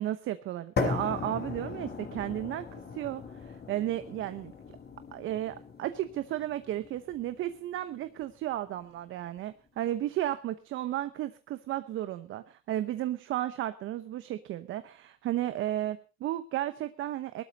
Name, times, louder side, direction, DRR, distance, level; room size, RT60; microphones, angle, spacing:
voice 1, 0.0-4.5 5.1-17.4, right 13 dB, 85° right, 12 dB, 0.9 m, -34 dB
sound 1, 0.8-8.8, left 5 dB, 55° left, 4.3 m, -38 dB
18.0 x 12.5 x 4.1 m, 0.32 s
cardioid pair, 90°, 20 cm